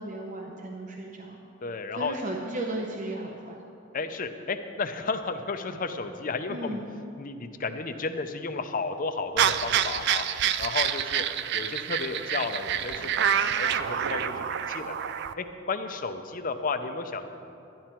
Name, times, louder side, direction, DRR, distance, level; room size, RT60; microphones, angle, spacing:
voice 1, 0.0-1.4 1.9-3.6 6.5-6.8, right 1 dB, 40° right, 1 dB, 0.7 m, -35 dB
voice 2, 1.6-2.2 3.9-6.7 7.2-10.3 10.6-11.2 11.5-15.0 15.4-17.3, left 4 dB, 45° left, 8 dB, 0.6 m, -33 dB
sound 1, 9.4-15.3, right 9 dB, 60° right, 0.4 m, -27 dB
12.0 x 11.0 x 4.5 m, 2.7 s
head